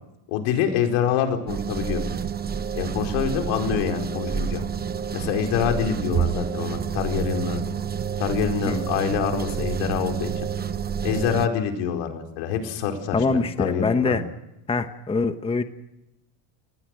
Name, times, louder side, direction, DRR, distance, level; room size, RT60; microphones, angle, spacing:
voice 1, 0.3-2.0 2.8-4.6 5.1-7.6 8.2-10.5 11.0-14.2, left 8 dB, 75° left, 4 dB, 4.7 m, -26 dB
sound 1, 1.5-11.5, right 7 dB, 20° right, 0.9 m, -28 dB
voice 2, 13.1-14.2 14.7-15.6, left 4 dB, 10° left, 9 dB, 1.0 m, -24 dB
29.0 x 19.5 x 6.5 m, 0.90 s
cardioid pair, 135°, 50 cm